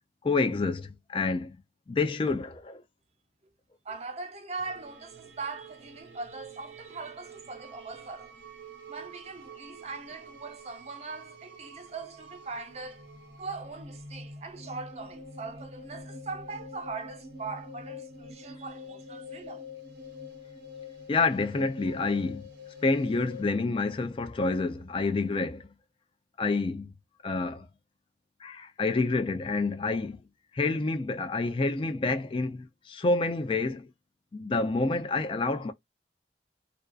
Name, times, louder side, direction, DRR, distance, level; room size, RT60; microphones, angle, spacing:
voice 1, 0.2-1.6 1.9-2.8 21.1-22.5 22.8-25.7 26.4-26.9 27.2-27.7 28.4-30.2 30.5-33.9 34.3-35.7, left 3 dB, 30° left, 0.3 m, -28 dB
voice 2, 3.8-8.3 8.9-13.1 13.4-19.7, right 4 dB, 40° right, 0.6 m, -40 dB
sound 1, 4.6-23.4, left 2 dB, 85° right, 1.0 m, -46 dB
2.4 x 2.4 x 2.3 m
head